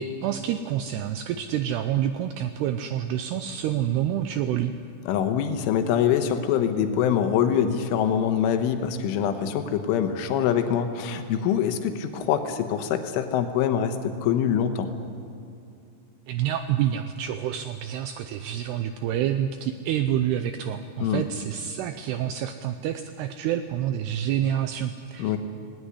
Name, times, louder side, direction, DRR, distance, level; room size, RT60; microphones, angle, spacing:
voice 1, 0.0-4.7 16.3-25.4, right 10 dB, 85° right, 9 dB, 2.3 m, -28 dB
voice 2, 5.1-14.9 21.0-21.3 25.2-25.4, left 8 dB, 90° left, 8 dB, 3.6 m, -24 dB
18.5 x 17.5 x 9.9 m, 2.5 s
omnidirectional pair, 5.5 m